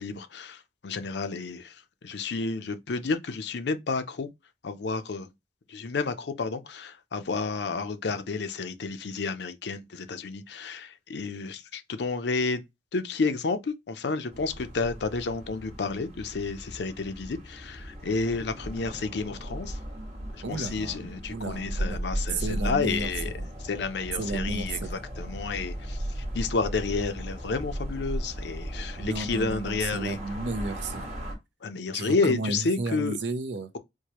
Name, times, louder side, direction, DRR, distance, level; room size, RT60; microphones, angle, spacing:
voice 1, 0.0-4.3 4.6-5.3 5.7-12.6 12.9-19.8 20.3-23.3 23.6-30.2 31.6-33.2, left 4 dB, 65° left, 0.5 m, -31 dB
sound 1, 14.3-31.4, right 1 dB, 35° right, 1.3 m, -36 dB
voice 2, 20.4-22.0 22.3-23.1 23.4-23.5 24.2-24.9 29.0-31.0 31.9-33.7, right 3 dB, 75° right, 0.6 m, -33 dB
4.5 x 2.2 x 2.9 m
head